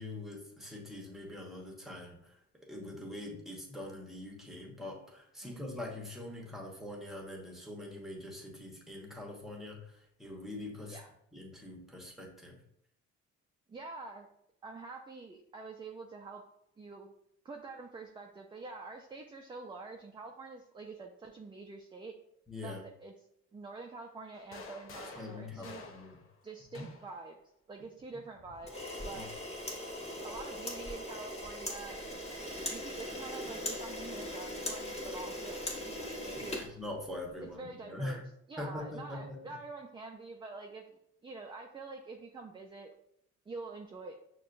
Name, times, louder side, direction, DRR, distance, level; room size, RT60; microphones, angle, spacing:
voice 1, 0.0-11.0 11.3-12.6 22.5-22.8 25.2-26.2 26.7-26.9 29.1-29.2 36.6-38.2 38.6-39.4, left 1 dB, ahead, 0 dB, 1.0 m, -43 dB
voice 2, 5.4-5.8 10.9-11.1 13.7-14.3 14.6-16.4 16.8-17.1 17.4-22.2 22.6-23.1 23.5-25.8 26.4-27.4 27.7-28.8 29.0-29.3 30.2-32.2 32.6-36.6 37.4-38.2 38.5-42.9 43.5-44.2, right 3 dB, 15° right, 2 dB, 0.4 m, -46 dB
sound 1, 24.3-27.2 28.3-29.4, left 4 dB, 45° left, 0.7 m, -50 dB
Camera, 28.6-37.4, left 1 dB, 20° left, 1.3 m, -40 dB
6.2 x 2.2 x 2.5 m, 0.74 s
cardioid pair, 90°, 30 cm